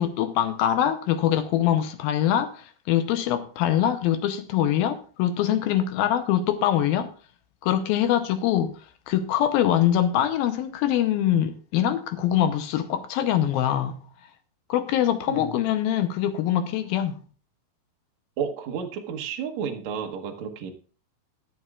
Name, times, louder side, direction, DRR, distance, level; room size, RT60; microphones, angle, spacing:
voice 1, 0.0-7.1 7.6-8.7 9.1-14.0 14.7-17.2, left 11 dB, 75° left, 9 dB, 2.3 m, -23 dB
voice 2, 15.3-15.6 18.4-20.7, right 7 dB, 75° right, 3 dB, 1.6 m, -32 dB
22.0 x 7.5 x 2.4 m, 0.39 s
omnidirectional pair, 5.1 m